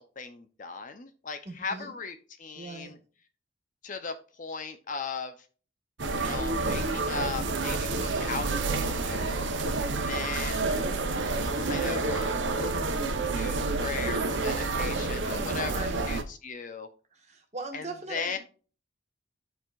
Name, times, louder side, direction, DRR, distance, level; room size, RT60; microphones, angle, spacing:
voice 1, 0.0-3.0 3.8-5.3 6.2-9.4 9.8-10.7 11.6-12.8 13.3-16.9 17.7-18.4, left 4 dB, 40° left, 0.6 m, -38 dB
voice 2, 1.4-1.9 2.5-2.9 15.1-16.1 17.1-18.4, right 2 dB, 35° right, 1.5 m, -41 dB
sound 1, 6.0-16.2, right 3 dB, 65° right, 0.9 m, -29 dB
13.0 x 4.5 x 2.4 m
head